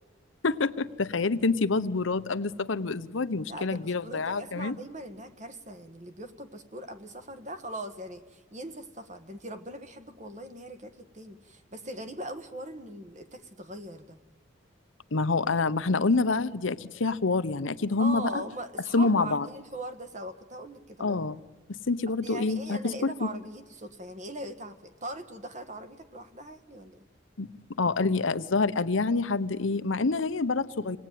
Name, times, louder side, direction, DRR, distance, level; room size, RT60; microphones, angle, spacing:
voice 1, 0.4-4.7 15.1-18.4 18.9-19.5 21.0-21.4 21.9-23.3 27.4-27.5 27.8-31.0, left 3 dB, 75° left, 12 dB, 0.8 m, -27 dB
voice 2, 3.5-14.2 18.0-21.2 22.2-27.0, right 1 dB, 35° right, 9 dB, 1.4 m, -40 dB
26.5 x 18.5 x 9.2 m, 1.3 s
head